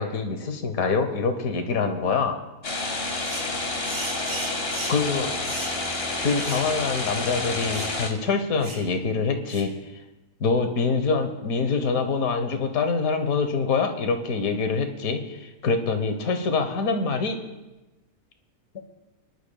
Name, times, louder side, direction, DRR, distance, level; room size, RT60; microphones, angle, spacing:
voice 1, 0.0-2.4 4.9-5.3 6.2-9.7 10.4-17.4, left 4 dB, 70° left, 6 dB, 1.5 m, -25 dB
sound 1, 2.6-8.1, left 2 dB, 45° left, 1.6 m, -29 dB
sound 2, 3.2-3.5 3.8-5.1 5.4-5.8 6.4-6.7 7.0-7.1 7.7-8.0 8.6-8.9 9.5-9.7, right 2 dB, 60° right, 2.6 m, -37 dB
23.5 x 12.0 x 2.3 m, 1.1 s
omnidirectional pair, 1.6 m